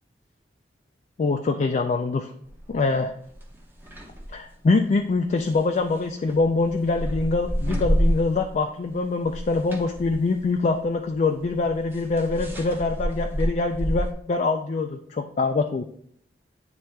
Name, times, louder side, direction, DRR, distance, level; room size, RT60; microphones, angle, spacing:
voice 1, 1.2-2.3 2.7-3.1 4.3-15.8, left 3 dB, 40° left, 4 dB, 0.3 m, -24 dB
sound 1, 2.4-2.8 3.3-4.4 5.3-8.6 9.0-14.1, equal, 10° right, 0.8 m, -29 dB
8.9 x 3.3 x 3.2 m, 0.65 s
head